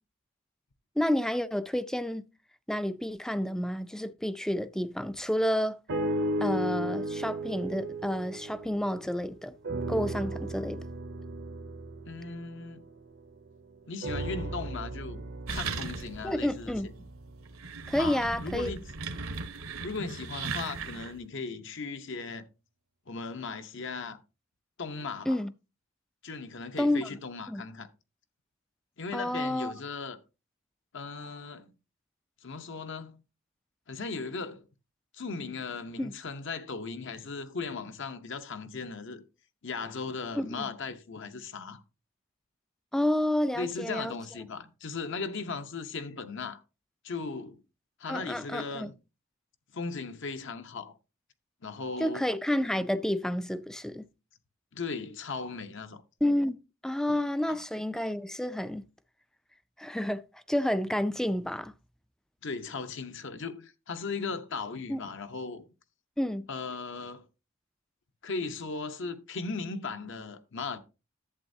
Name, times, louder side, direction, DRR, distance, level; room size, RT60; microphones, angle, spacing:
voice 1, 1.0-2.3 2.7-5.8 6.4-9.5 9.9-10.8 16.2-16.9 17.9-18.7 25.3-25.5 26.8-27.1 27.5-27.6 29.1-29.7 36.0-36.1 40.3-40.7 42.9-44.2 48.1-48.9 52.0-54.0 56.2-56.6 56.8-58.8 59.8-61.7 64.9-65.0 66.2-66.5, left 1 dB, 5° left, 0.4 m, -30 dB
sound 1, 5.9-9.2 9.6-13.4 14.0-18.2 18.9-19.0, right 1 dB, 60° right, 0.8 m, -35 dB
voice 2, 12.1-12.9 13.9-16.8 18.0-18.8 19.8-22.5 23.1-24.2 24.8-25.4 26.2-27.9 29.0-30.2 30.9-31.7 32.4-33.2 33.9-34.7 35.1-39.2 39.6-41.8 43.6-46.6 47.0-47.6 48.0-48.9 49.7-50.9 51.6-52.3 54.7-56.0 57.5-57.6 62.4-65.6 66.5-67.2 68.2-70.8, left 4 dB, 60° left, 0.9 m, -37 dB
sound 2, 15.5-16.3 16.7-16.8 17.4-21.2, right 4 dB, 75° right, 1.1 m, -37 dB
11.0 x 7.9 x 2.7 m
head